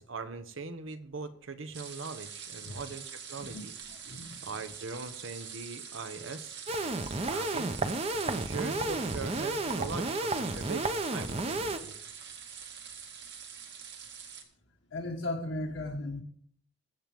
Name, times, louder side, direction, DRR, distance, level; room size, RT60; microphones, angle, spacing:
voice 1, 0.0-3.7 4.4-6.6 7.3-7.8 8.1-11.9, right 4 dB, 85° right, 11 dB, 1.0 m, -41 dB
sound 1, 1.7-14.4, right 7 dB, 60° right, 2.0 m, -45 dB
voice 2, 3.9-4.6 14.9-16.2, left 2 dB, 90° left, -2 dB, 1.5 m, -37 dB
sound 2, 6.7-11.8, right 2 dB, 30° right, 0.7 m, -32 dB
22.5 x 7.6 x 3.5 m, 0.63 s
head